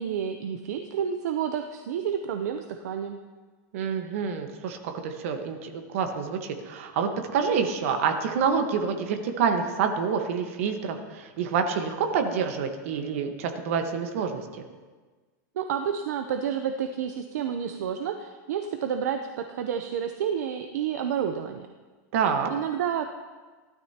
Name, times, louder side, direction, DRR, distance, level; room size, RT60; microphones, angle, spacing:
voice 1, 0.0-3.2 15.6-21.7 22.5-23.1, right 8 dB, 65° right, 6 dB, 0.7 m, -30 dB
voice 2, 3.7-14.4 22.1-22.5, right 6 dB, 50° right, 5 dB, 1.3 m, -27 dB
17.5 x 12.5 x 2.9 m, 1.4 s
supercardioid pair, 180°, 10 cm